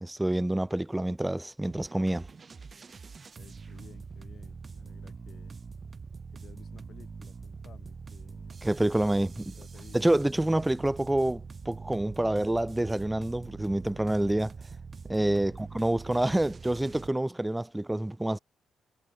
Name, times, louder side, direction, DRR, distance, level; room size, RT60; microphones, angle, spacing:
voice 1, 0.0-2.3 8.6-9.3 9.9-14.5 15.1-18.4, right 1 dB, 10° right, 0.5 m, -27 dB
sound 1, 1.6-17.1, right 5 dB, 35° right, 1.2 m, -44 dB
voice 2, 3.4-5.6 6.3-8.8 9.2-10.6 15.4-15.7, left 8 dB, 55° left, 6.0 m, -56 dB
cardioid pair, 90°, 0 cm